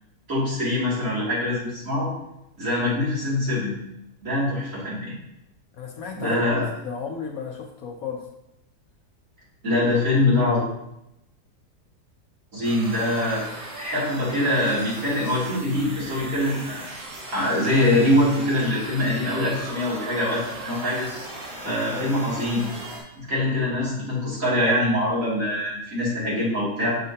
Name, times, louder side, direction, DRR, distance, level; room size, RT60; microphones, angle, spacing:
voice 1, 0.3-2.1 2.6-3.7 4.2-5.1 6.1-6.6 9.6-10.6 12.5-13.4 13.8-16.9 17.3-21.1 21.6-22.7 23.2-26.9, left 1 dB, 50° right, -7 dB, 2.9 m, -23 dB
voice 2, 5.7-6.4 6.8-8.2 21.6-22.1, left 6 dB, 65° left, 2 dB, 1.0 m, -34 dB
sound 1, 12.6-23.0, right 1 dB, 80° right, 2.1 m, -38 dB
6.6 x 6.3 x 2.8 m, 0.86 s
omnidirectional pair, 1.8 m